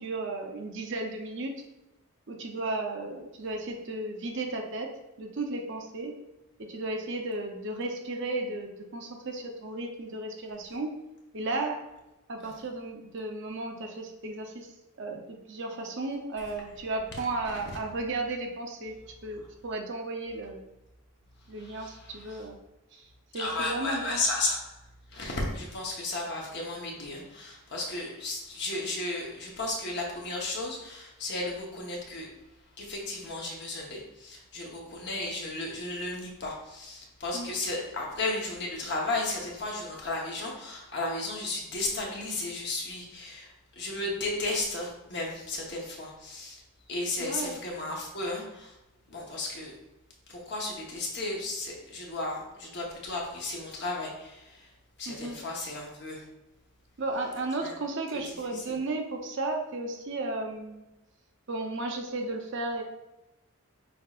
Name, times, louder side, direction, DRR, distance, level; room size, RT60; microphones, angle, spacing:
voice 1, 0.0-1.5 2.3-4.9 5.2-6.1 6.6-11.0 11.3-11.9 12.3-14.7 15.0-20.6 21.5-22.6 22.9-23.1 23.3-24.2 37.3-37.5 47.2-47.6 55.1-55.4 57.0-60.8 61.5-62.8, right 2 dB, 55° right, 3 dB, 0.6 m, -34 dB
voice 2, 21.6-22.4 23.3-24.8 25.1-32.3 32.8-46.6 46.9-48.8 49.1-49.8 50.3-54.7 55.0-56.2 57.6-57.7 58.1-58.8, left 2 dB, 50° left, -1 dB, 1.0 m, -34 dB
5.9 x 3.6 x 2.4 m, 0.97 s
head